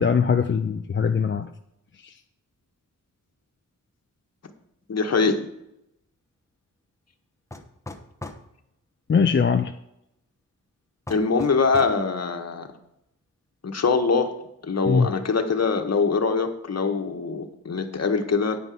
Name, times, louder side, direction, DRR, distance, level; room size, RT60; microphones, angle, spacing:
voice 1, 0.0-1.5 2.0-2.1 9.1-9.7 14.8-15.1, left 6 dB, 35° left, 6 dB, 0.5 m, -21 dB
voice 2, 4.9-5.5 11.1-12.7 13.6-14.3 14.6-18.6, left 4 dB, 55° left, 6 dB, 1.3 m, -23 dB
sound 1, 7.5-8.5 11.1-12.0, left 2 dB, 10° left, 1.0 m, -38 dB
9.7 x 5.4 x 7.5 m, 0.81 s
wide cardioid pair, 140°, 32 cm